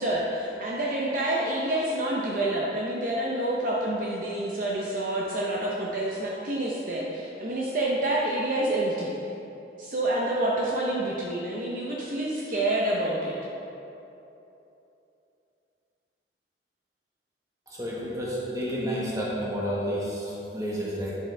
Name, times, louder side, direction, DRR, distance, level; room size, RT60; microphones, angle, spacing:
voice 1, 0.0-9.1 9.8-13.4, right 1 dB, 45° right, -4 dB, 0.8 m, -28 dB
voice 2, 17.7-21.1, equal, 20° right, -6 dB, 1.6 m, -30 dB
10.0 x 7.2 x 3.5 m, 3.0 s
head